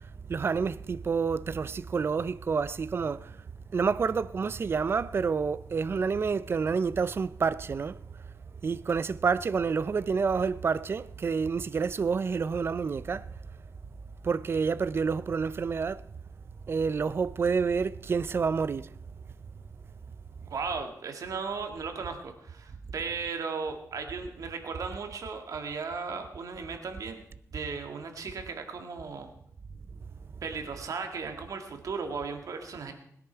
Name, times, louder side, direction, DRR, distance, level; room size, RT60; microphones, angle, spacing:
voice 1, 0.3-3.3 3.7-8.0 8.6-13.3 14.2-16.0 16.7-18.9, right 5 dB, 40° right, 0.5 m, -28 dB
voice 2, 20.5-27.2 27.5-29.3 30.4-32.9, right 5 dB, 70° right, 2.1 m, -36 dB
20.0 x 10.5 x 4.6 m
wide cardioid pair, 130°, 6 cm